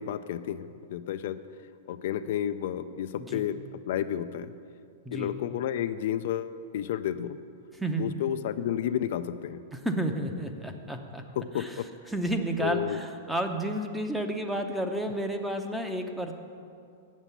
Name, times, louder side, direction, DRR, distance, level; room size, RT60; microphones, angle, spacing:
voice 1, 0.0-1.4 1.9-4.5 5.1-7.4 8.0-9.6 11.4-12.1 12.6-13.0, left 10 dB, 65° left, 10 dB, 0.4 m, -31 dB
voice 2, 5.0-5.4 7.8-8.1 9.7-11.3 11.6-11.7 12.1-16.3, right 1 dB, 5° right, 5 dB, 0.7 m, -31 dB
8.0 x 7.3 x 8.1 m, 2.4 s
hypercardioid pair, 140°, 0 cm